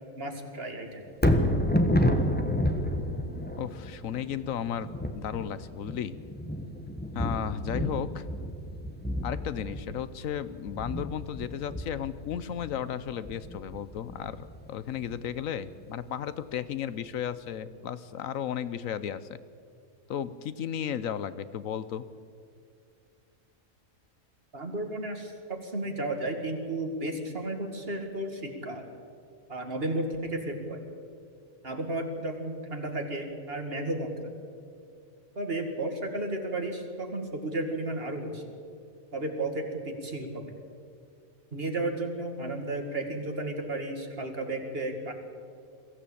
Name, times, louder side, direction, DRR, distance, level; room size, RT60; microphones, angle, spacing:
voice 1, 0.2-1.1 24.5-28.8 29.5-30.8 31.6-34.1 35.4-38.4 39.1-40.5 41.5-45.1, right 2 dB, 45° right, 4 dB, 2.3 m, -33 dB
Thunder, 1.1-15.3 15.8-15.9, left 1 dB, 10° left, 1.1 m, -30 dB
voice 2, 3.6-6.2 7.1-8.2 9.2-19.3 20.1-22.1, left 9 dB, 75° left, 14 dB, 1.1 m, -34 dB
22.0 x 15.0 x 8.6 m, 2.4 s
omnidirectional pair, 1.4 m